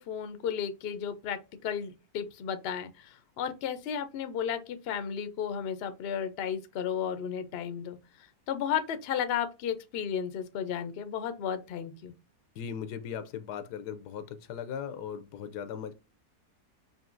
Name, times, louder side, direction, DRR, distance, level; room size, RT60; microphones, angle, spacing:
voice 1, 0.0-12.1, left 8 dB, 60° left, 0.6 m, -34 dB
voice 2, 12.6-15.9, left 8 dB, 85° left, 1.2 m, -38 dB
5.4 x 2.6 x 2.5 m
omnidirectional pair, 1.7 m